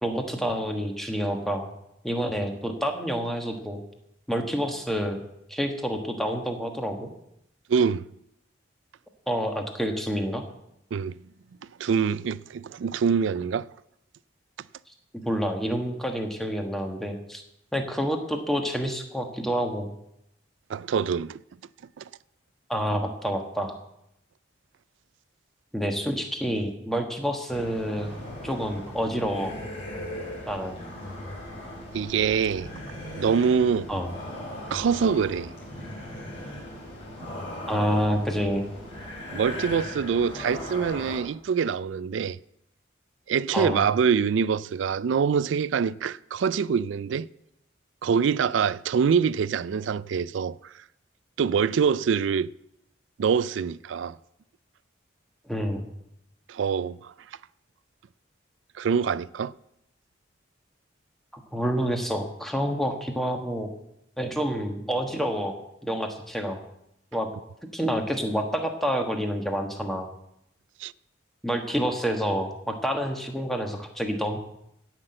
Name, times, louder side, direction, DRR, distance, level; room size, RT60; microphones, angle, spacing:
voice 1, 0.0-1.7 2.0-3.8 4.3-5.2 5.5-7.1 9.3-10.4 15.2-17.4 17.7-19.9 22.7-23.8 25.7-28.2 28.4-29.5 30.5-30.8 33.9-34.1 37.7-38.7 43.5-43.9 55.5-55.9 61.3-63.7 64.2-65.5 65.8-66.6 67.1-67.3 67.7-70.1 71.4-74.4, equal, ahead, 1.3 m, -28 dB
voice 2, 7.7-8.0 10.9-11.2 11.8-13.7 20.7-21.4 22.0-22.1 31.9-32.7 33.2-33.9 34.7-35.5 39.3-42.4 43.3-47.3 48.0-50.7 51.4-52.5 53.2-54.2 56.5-57.1 58.8-59.5 70.8-70.9, right 6 dB, 75° right, 0.4 m, -25 dB
sound 1, 27.5-41.2, left 1 dB, 30° left, 4.7 m, -38 dB
16.5 x 5.9 x 7.7 m
head